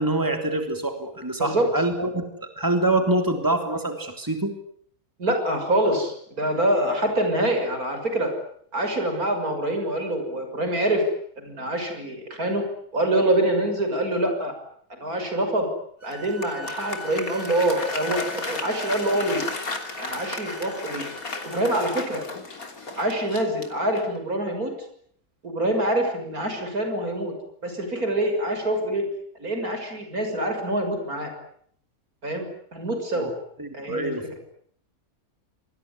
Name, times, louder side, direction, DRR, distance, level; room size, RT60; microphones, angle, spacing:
voice 1, 0.0-2.3 2.6-4.5 33.2-33.3 33.6-34.4, right 2 dB, 15° right, 6 dB, 3.4 m, -25 dB
voice 2, 5.2-8.3 8.7-11.1 11.4-12.6 12.9-14.5 15.0-15.7 16.0-19.4 20.0-21.1 21.5-22.2 23.0-24.7 25.4-27.3 27.6-29.1 29.4-31.3 32.2-33.3 33.7-34.2, right 1 dB, 80° right, 6 dB, 6.8 m, -25 dB
sound 1, 16.0-21.7, equal, 25° left, 7.5 m, -42 dB
Applause, 16.1-24.2, left 3 dB, 75° left, 3.7 m, -34 dB
27.5 x 20.5 x 9.7 m, 0.65 s
omnidirectional pair, 1.5 m